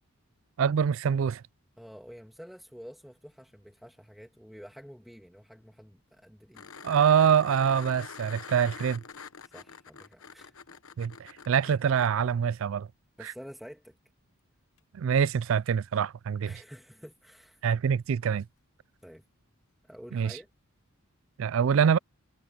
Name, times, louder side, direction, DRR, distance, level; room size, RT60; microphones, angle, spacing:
voice 1, 0.6-1.4 6.8-9.0 11.0-12.9 14.9-16.5 17.6-18.5 20.1-20.3 21.4-22.0, right 7 dB, 65° right, 0.3 m, -25 dB
voice 2, 1.8-6.7 9.4-10.5 13.2-13.9 16.4-17.6 19.0-19.2 19.8-20.5, equal, ahead, 2.5 m, -49 dB
sound 1, 6.5-12.1 14.8-14.9, left 6 dB, 70° left, 1.0 m, -46 dB
head